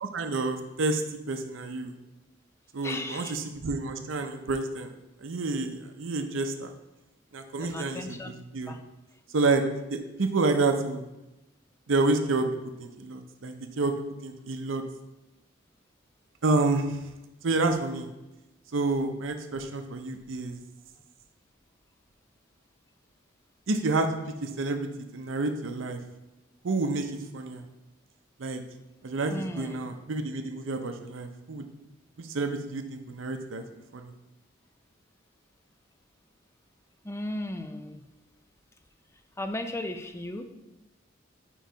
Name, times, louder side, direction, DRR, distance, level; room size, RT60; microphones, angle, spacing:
voice 1, 0.0-1.0 1.3-2.0 2.7-4.9 5.2-6.7 7.3-8.8 9.3-9.6 9.9-11.0 11.9-12.5 12.8-13.9 14.2-14.8 16.4-17.0 17.4-18.1 18.7-20.6 23.7-24.1 24.4-24.9 25.1-26.0 26.6-27.6 28.4-28.6 29.0-31.7 32.2-33.6 33.9-34.1, right 3 dB, 90° right, 6 dB, 0.6 m, -29 dB
voice 2, 2.8-3.4 7.6-8.3 8.7-8.8 29.3-29.8 37.0-38.0 39.4-40.4, left 1 dB, 15° left, 6 dB, 0.4 m, -35 dB
4.6 x 4.6 x 5.1 m, 0.98 s
head